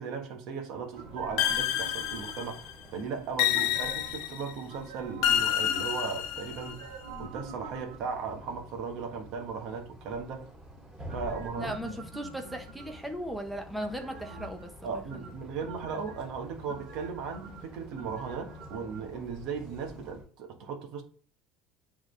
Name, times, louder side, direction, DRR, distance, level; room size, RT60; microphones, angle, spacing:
voice 1, 0.0-6.9 7.2-10.5 11.1-11.7 14.8-21.0, right 5 dB, 60° right, 1.3 m, -37 dB
sound 1, 0.9-20.2, left 1 dB, 25° right, 2.5 m, -49 dB
sound 2, 0.9-2.8 3.5-4.2 4.7-6.1 6.6-8.3 11.1-13.2 13.8-14.7 15.1-16.2 16.7-19.0 19.3-19.4, right 4 dB, 80° right, 1.7 m, -46 dB
sound 3, 1.4-2.7 3.4-4.5 5.2-6.7, left 11 dB, 70° left, 0.6 m, -28 dB
voice 2, 11.6-15.3, equal, 5° right, 0.9 m, -37 dB
8.8 x 3.7 x 3.3 m
cardioid pair, 155°, 0 cm